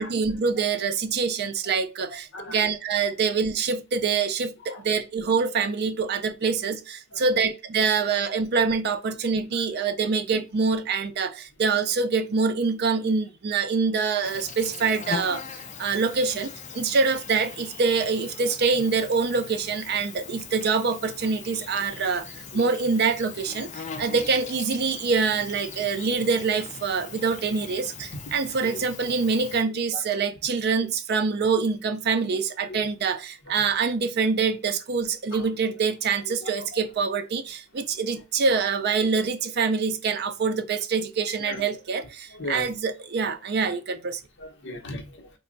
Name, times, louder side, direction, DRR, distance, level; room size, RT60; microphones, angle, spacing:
voice 1, 0.0-15.4 15.8-44.2, right 5 dB, 50° right, 0.4 m, -25 dB
voice 2, 2.1-2.7 4.6-4.8 7.1-7.4 21.8-22.0 22.5-22.6 25.9-26.0 28.1-28.2 28.6-28.8 29.9-30.1 32.6-32.9 33.5-33.6 35.3-35.5 36.2-36.8 38.4-38.5 41.3-41.6 42.0-42.7 43.2-43.3 43.6-43.8 44.4-45.4, left 2 dB, 55° left, 0.8 m, -39 dB
Insect, 14.2-29.6, left 5 dB, 35° left, 0.4 m, -40 dB
3.4 x 2.2 x 3.9 m
head